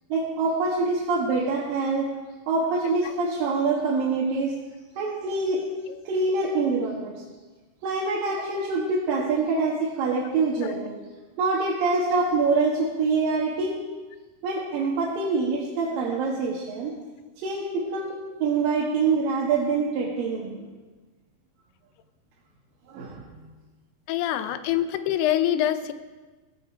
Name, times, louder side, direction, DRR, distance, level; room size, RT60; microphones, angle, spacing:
voice 1, 0.1-2.1 2.5-4.5 5.0-5.6 6.1-7.1 7.8-11.0 11.4-13.8 14.4-16.9 17.4-20.6 22.9-23.2, right 3 dB, 65° right, -4 dB, 3.1 m, -25 dB
voice 2, 24.1-25.9, left 11 dB, 80° left, 11 dB, 2.7 m, -25 dB
15.5 x 14.5 x 4.5 m, 1.3 s
omnidirectional pair, 4.8 m